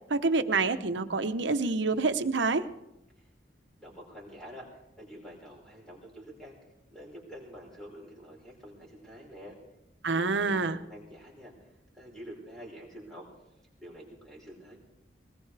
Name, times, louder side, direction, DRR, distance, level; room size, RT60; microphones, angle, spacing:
voice 1, 0.1-2.6 10.0-10.8, right 3 dB, 75° right, 10 dB, 0.9 m, -27 dB
voice 2, 3.8-6.6 6.9-9.6 10.1-13.2 13.8-14.8, equal, 5° left, -3 dB, 5.1 m, -48 dB
20.5 x 19.5 x 3.4 m, 0.88 s
head